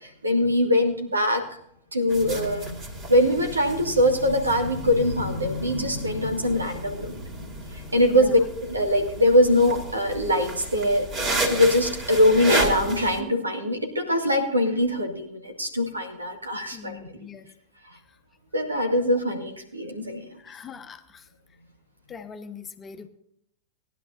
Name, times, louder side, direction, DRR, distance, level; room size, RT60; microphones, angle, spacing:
voice 1, 0.2-1.5 1.9-2.8 3.1-7.2 7.9-11.1 11.5-17.0 18.5-20.2, left 1 dB, 80° right, 4 dB, 1.9 m, -22 dB
sound 1, 2.1-13.2, right 1 dB, 35° right, 2.7 m, -32 dB
voice 2, 8.0-8.3 16.7-17.5 20.4-21.3 22.1-23.1, left 6 dB, 20° left, 8 dB, 1.0 m, -42 dB
19.0 x 11.0 x 2.6 m, 0.70 s
figure-of-eight pair, 90°, 0 cm